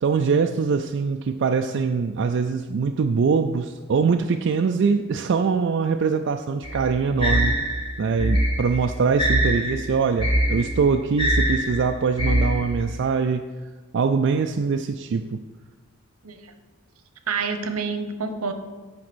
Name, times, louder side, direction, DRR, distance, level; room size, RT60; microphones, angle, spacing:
voice 1, 0.0-7.5 8.0-13.4 13.9-15.4, right 5 dB, 55° right, 5 dB, 0.3 m, -23 dB
sound 1, 6.6-12.9, equal, 25° left, 1.4 m, -23 dB
voice 2, 17.3-18.5, right 5 dB, 80° right, 8 dB, 0.9 m, -28 dB
8.6 x 5.0 x 6.1 m, 1.3 s
head